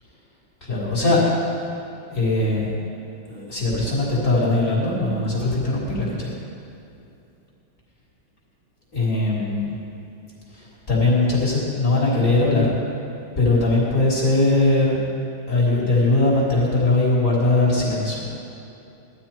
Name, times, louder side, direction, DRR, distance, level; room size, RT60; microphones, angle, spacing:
voice 1, 0.6-1.2 1.5-1.7 2.1-2.7 3.3-6.3 8.9-9.7 10.5-12.7 13.4-15.0 15.5-18.3, left 2 dB, 35° left, -6 dB, 4.4 m, -20 dB
18.5 x 13.0 x 4.6 m, 2.7 s
omnidirectional pair, 2.2 m